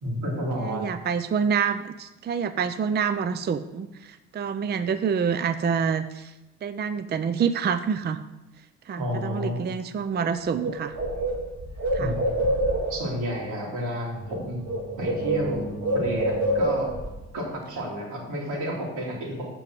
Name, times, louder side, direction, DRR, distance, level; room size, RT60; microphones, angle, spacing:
voice 1, 0.0-0.8 9.0-9.6 12.0-12.2 12.9-14.6 15.0-16.9 17.3-19.5, equal, 85° right, -2 dB, 3.1 m, -31 dB
voice 2, 0.6-6.3 6.6-8.2 8.9-10.9 11.9-12.1, right 6 dB, 35° right, 11 dB, 0.5 m, -27 dB
Bird, 10.2-10.3 10.6-13.1 14.2-14.4 14.7-17.1, right 1 dB, 65° right, 2.8 m, -26 dB
7.5 x 5.3 x 7.4 m, 1.0 s
cardioid pair, 90°, 30 cm